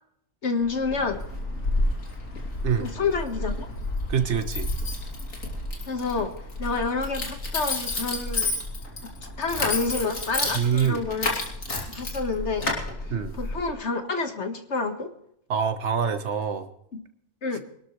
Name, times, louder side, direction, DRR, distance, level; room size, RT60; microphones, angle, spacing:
voice 1, 0.4-1.2 2.8-3.7 5.9-6.3 6.6-8.5 9.4-11.4 11.9-12.7 13.0-15.1 17.4-17.7, left 4 dB, 55° left, 7 dB, 1.8 m, -28 dB
Keys jangling, 0.6-13.7, left 2 dB, 70° left, 3.2 m, -31 dB
voice 2, 4.1-4.7 10.5-11.0 13.1-13.3 15.5-16.7, right 7 dB, 55° right, 9 dB, 1.5 m, -25 dB
23.5 x 12.5 x 3.2 m, 0.72 s
omnidirectional pair, 1.4 m